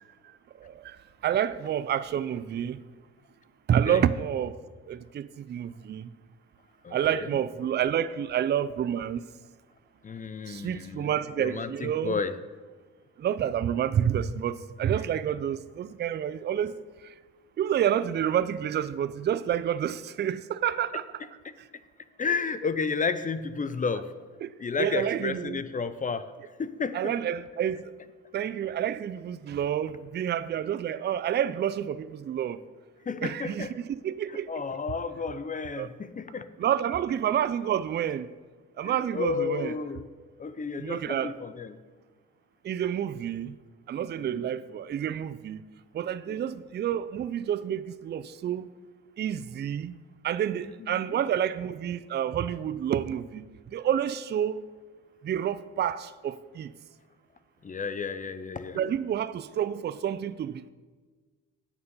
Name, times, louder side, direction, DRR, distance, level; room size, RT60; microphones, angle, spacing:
voice 1, 0.6-1.0 1.2-2.8 3.7-4.5 4.9-6.1 6.9-9.2 10.5-12.2 13.2-16.7 17.6-21.0 24.4-24.5 24.8-25.6 26.9-27.8 28.3-32.6 33.2-34.5 35.8-35.9 36.6-38.3 38.8-39.7 40.8-41.3 42.6-43.6 43.9-45.6 45.9-48.7 49.2-50.0 50.2-53.4 53.7-54.6 55.2-56.7 58.8-60.7, right 9 dB, 35° right, 0.4 m, -29 dB
voice 2, 6.8-7.3 10.0-12.4 21.4-21.5 22.2-24.1 24.6-26.3 26.6-27.1 33.1-33.7 34.3-36.5 38.8-40.1 40.4-41.8 44.2-44.5 46.3-46.5 50.9-51.2 57.6-58.8, left 5 dB, 25° left, 0.5 m, -32 dB
8.7 x 7.0 x 5.4 m
cardioid pair, 90°, 30 cm